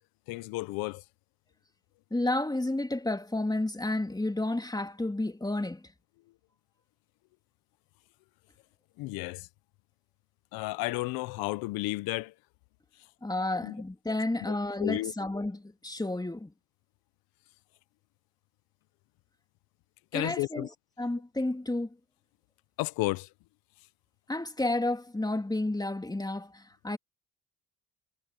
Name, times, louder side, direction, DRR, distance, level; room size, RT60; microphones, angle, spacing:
voice 1, 0.3-1.0 9.0-9.5 10.5-12.3 13.6-13.7 14.5-15.1 20.1-20.7 22.8-23.3, left 21 dB, 80° left, 1.1 m, -32 dB
voice 2, 2.1-5.8 13.2-16.5 20.1-20.7 21.0-21.9 24.3-27.0, left 2 dB, 10° left, 3.4 m, -31 dB
supercardioid pair, 65°, 35 cm